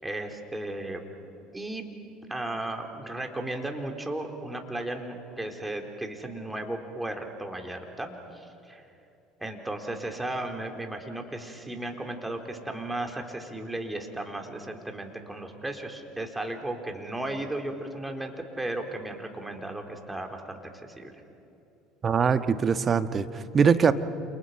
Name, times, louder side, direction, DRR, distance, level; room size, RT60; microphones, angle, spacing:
voice 1, 0.0-1.0 1.5-1.8 2.3-8.8 9.4-21.1, right 1 dB, 10° right, 3 dB, 3.9 m, -35 dB
voice 2, 22.0-23.9, right 6 dB, 35° right, 10 dB, 1.3 m, -22 dB
29.0 x 28.5 x 5.8 m, 2.7 s
hypercardioid pair, 70°, 0 cm